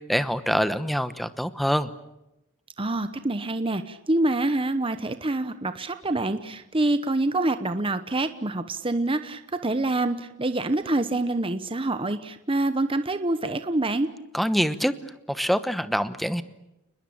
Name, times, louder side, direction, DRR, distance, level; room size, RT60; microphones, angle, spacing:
voice 1, 0.1-1.9 14.3-14.9 15.3-16.4, equal, ahead, 12 dB, 1.0 m, -25 dB
voice 2, 2.8-14.1, right 2 dB, 25° right, 10 dB, 0.9 m, -26 dB
29.5 x 21.0 x 8.7 m, 0.91 s
head